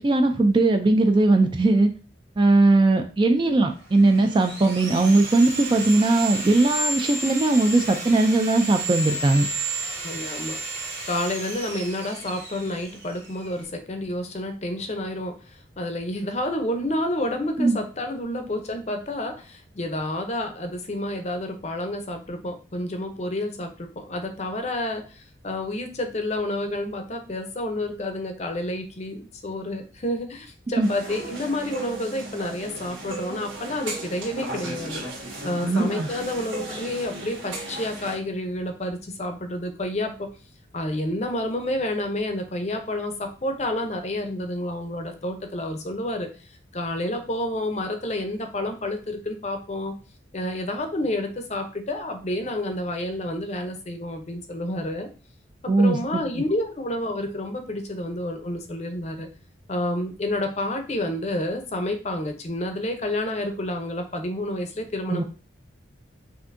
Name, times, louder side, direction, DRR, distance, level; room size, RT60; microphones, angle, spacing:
voice 1, 0.0-1.9 2.4-9.5 17.6-17.8 30.8-30.9 35.6-36.1 55.7-56.2 65.1-65.2, right 2 dB, 25° right, 6 dB, 0.3 m, -19 dB
Sawing, 3.8-13.6, right 2 dB, 60° right, 2.1 m, -32 dB
voice 2, 9.8-10.6 11.1-15.4 15.8-35.0 35.4-40.3 40.7-46.3 46.7-50.0 50.3-55.1 55.6-59.3 59.7-65.2, left 1 dB, 35° left, 6 dB, 0.6 m, -29 dB
sound 1, 30.8-38.2, right 1 dB, 85° right, 1.8 m, -35 dB
5.8 x 2.6 x 2.5 m, 0.35 s
head